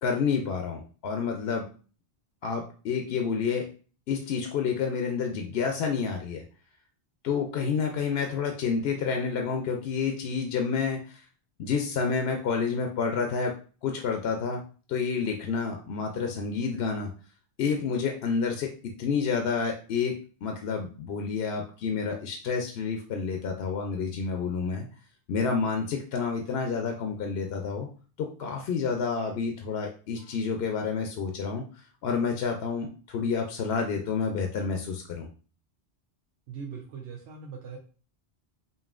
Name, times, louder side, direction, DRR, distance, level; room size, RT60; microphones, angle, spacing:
voice 1, 0.0-1.7 2.4-3.7 4.1-6.4 7.2-11.2 11.6-13.5 13.8-14.6 14.9-17.1 17.6-24.8 25.3-27.9 28.2-31.6 32.0-35.3, left 5 dB, 70° left, 3 dB, 0.8 m, -29 dB
voice 2, 36.5-37.8, right 6 dB, 85° right, 0 dB, 0.9 m, -40 dB
5.3 x 2.6 x 2.4 m, 0.39 s
omnidirectional pair, 1.1 m